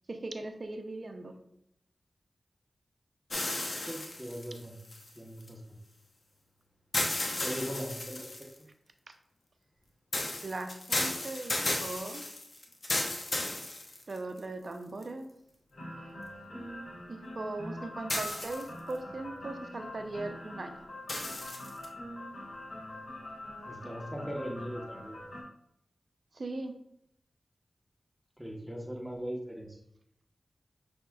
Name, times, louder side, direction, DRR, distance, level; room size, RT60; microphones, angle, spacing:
voice 1, 0.1-1.3 10.4-12.2 14.1-15.3 17.1-20.7 26.3-26.7, right 2 dB, 60° right, 6 dB, 0.6 m, -39 dB
sound 1, 3.3-5.5 6.9-8.6 10.1-14.4 15.0-15.1 18.1-18.9 21.1-21.9, left 2 dB, 55° left, 0.8 m, -34 dB
voice 2, 3.8-4.7 5.1-5.8 7.4-8.3 23.6-25.4 28.4-29.8, equal, 5° right, 1 dB, 1.0 m, -39 dB
sound 2, 15.7-25.4, left 1 dB, 70° left, 1.6 m, -44 dB
5.9 x 3.5 x 2.3 m, 0.75 s
cardioid pair, 45°, 0 cm